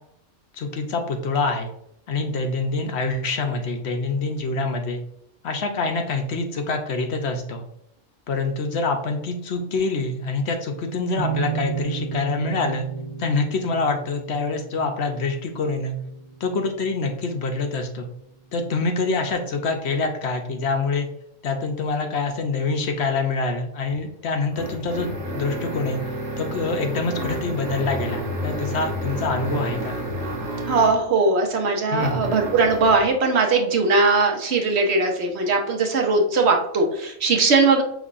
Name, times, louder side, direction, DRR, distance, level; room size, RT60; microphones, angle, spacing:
voice 1, 0.5-1.7 2.1-5.0 5.4-7.6 8.3-12.9 13.2-15.9 16.4-18.1 18.5-21.1 21.4-26.0 26.4-29.9 31.9-32.3, left 3 dB, 65° left, 4 dB, 0.8 m, -25 dB
sound 1, 11.1-18.4, right 7 dB, 30° right, 0.9 m, -34 dB
sound 2, 23.9-31.1 32.0-33.1, equal, 80° right, 1.4 m, -30 dB
voice 2, 30.7-37.8, right 3 dB, 60° right, 3 dB, 1.0 m, -20 dB
5.4 x 3.3 x 2.4 m, 0.75 s
omnidirectional pair, 1.3 m